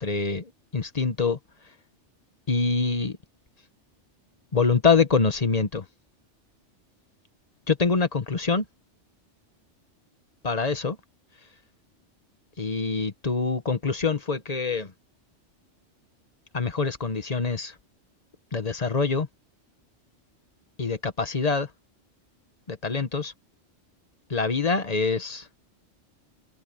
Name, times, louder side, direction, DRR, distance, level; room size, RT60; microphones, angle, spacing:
voice 1, 0.0-1.4 2.5-3.2 4.5-5.8 7.7-8.6 10.4-11.0 12.6-14.9 16.5-17.7 18.5-19.3 20.8-21.7 22.7-23.3 24.3-25.5, left 4 dB, 35° left, 1.2 m, -25 dB
open air
omnidirectional pair, 1.2 m